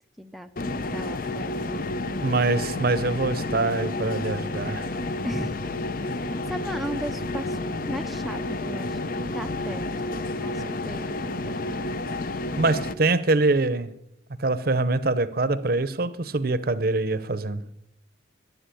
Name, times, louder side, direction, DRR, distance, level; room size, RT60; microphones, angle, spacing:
voice 1, 0.2-1.9 5.2-5.6 6.1-7.6 7.9-9.8 10.4-11.6, equal, ahead, 0.5 m, -36 dB
sound 1, 0.6-12.9, left 2 dB, 50° left, 0.7 m, -30 dB
voice 2, 2.2-4.9 12.6-13.9 14.4-17.6, right 2 dB, 50° right, 0.8 m, -24 dB
14.0 x 11.0 x 8.4 m
head